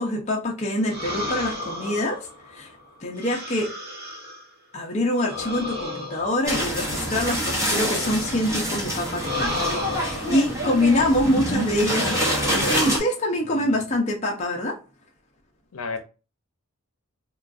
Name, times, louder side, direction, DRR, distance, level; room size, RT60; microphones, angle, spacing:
voice 1, 0.0-2.7 3.0-3.7 4.7-14.8, left 1 dB, 30° left, 0.5 m, -25 dB
sound 1, 0.9-4.5 5.2-8.5 9.1-10.5, left 2 dB, 45° right, 1.0 m, -33 dB
sound 2, 6.5-13.0, equal, 15° right, 0.7 m, -26 dB
voice 2, 13.5-13.9 15.7-16.0, left 4 dB, 80° left, 0.6 m, -33 dB
3.7 x 2.3 x 2.4 m
head